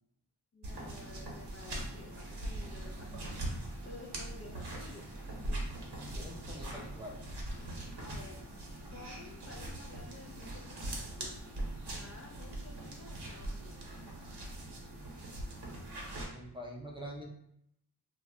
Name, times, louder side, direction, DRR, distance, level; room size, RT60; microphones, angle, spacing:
voice 1, 0.5-3.4 3.8-5.1 7.9-8.4 8.9-11.6 11.9-13.8, left 3 dB, 35° left, -2 dB, 0.4 m, -52 dB
sound 1, 0.6-16.3, right 1 dB, 65° right, 0.8 m, -41 dB
voice 2, 5.9-7.2 16.3-17.2, equal, 10° right, -2 dB, 0.5 m, -45 dB
2.3 x 2.1 x 3.6 m, 0.74 s
wide cardioid pair, 80°, 43 cm